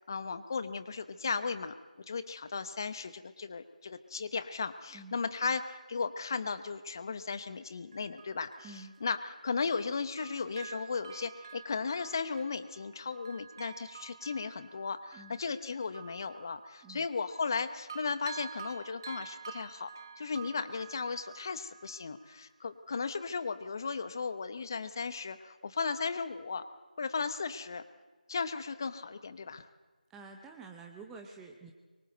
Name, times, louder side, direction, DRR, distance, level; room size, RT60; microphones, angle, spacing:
voice 1, 0.0-1.7 2.1-19.9 20.2-26.6 27.0-27.8 28.3-29.7, left 5 dB, 25° left, 13 dB, 0.9 m, -36 dB
voice 2, 4.9-5.2 8.6-8.9 15.1-15.4 16.8-17.1 30.1-31.7, right 4 dB, 5° right, 3 dB, 0.7 m, -49 dB
Bell, 6.9-7.0 7.9-9.9 10.2-17.6 17.9-22.5 22.9-23.0, right 6 dB, 25° right, 1.2 m, -50 dB
25.0 x 23.0 x 7.9 m, 1.3 s
figure-of-eight pair, 165°, 5 cm